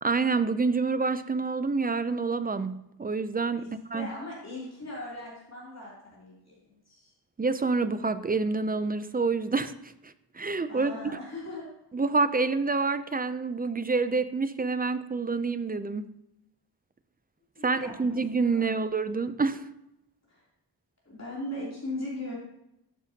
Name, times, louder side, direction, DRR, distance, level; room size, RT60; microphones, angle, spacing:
voice 1, 0.0-4.1 7.4-11.2 11.9-16.1 17.6-19.7, right 4 dB, 25° right, 12 dB, 0.3 m, -28 dB
voice 2, 3.9-7.1 10.7-11.7 17.5-18.2 18.5-18.8 20.3-20.4 21.0-22.3, left 1 dB, 35° left, -6 dB, 3.0 m, -39 dB
12.5 x 7.3 x 2.8 m, 0.84 s
wide cardioid pair, 145°, 43 cm